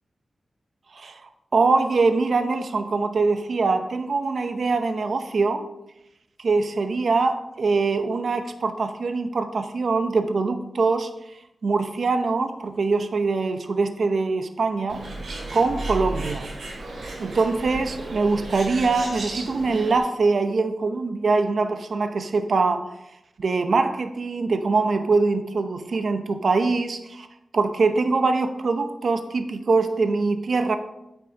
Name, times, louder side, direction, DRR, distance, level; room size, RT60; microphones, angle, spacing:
voice 1, 1.5-5.6 6.4-11.1 11.6-15.0 15.5-16.5 17.2-22.8 23.4-27.3 27.5-30.8, right 3 dB, 65° right, 8 dB, 0.7 m, -23 dB
Bird, 14.9-20.0, right 2 dB, 85° right, 2.2 m, -34 dB
9.4 x 8.3 x 2.9 m, 0.87 s
wide cardioid pair, 115°, 0 cm